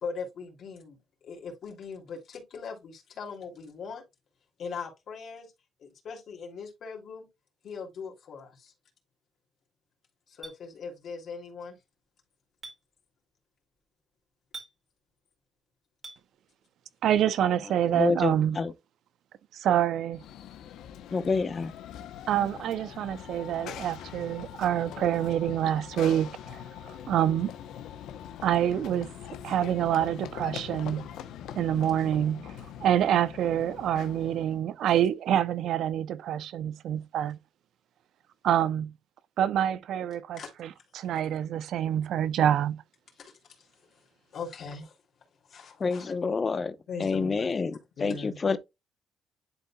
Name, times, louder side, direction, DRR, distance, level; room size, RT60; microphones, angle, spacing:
voice 1, 0.0-4.0 4.6-5.5 5.8-7.3 7.6-8.7 10.3-11.8 40.3-40.8 43.1-45.0 45.5-46.1 46.9-47.6 48.0-48.4, left 5 dB, 65° left, 2.8 m, -40 dB
Chink clink, 10.4-10.6 12.6-12.8 14.5-14.7 16.0-16.2, right 3 dB, 30° right, 2.4 m, -42 dB
voice 2, 17.0-18.6 19.5-20.2 22.3-26.6 27.1-27.5 28.4-29.1 29.4-31.1 31.6-32.5 32.8-37.4 38.4-38.9 39.4-40.7 40.9-42.8, right 10 dB, 75° right, 0.6 m, -26 dB
voice 3, 17.9-18.7 21.1-21.7 45.8-46.7 47.0-47.7 48.0-48.6, left 4 dB, 35° left, 0.9 m, -27 dB
Run / Train, 20.1-34.6, left 9 dB, 85° left, 0.8 m, -42 dB
11.0 x 4.1 x 2.3 m
cardioid pair, 90°, 0 cm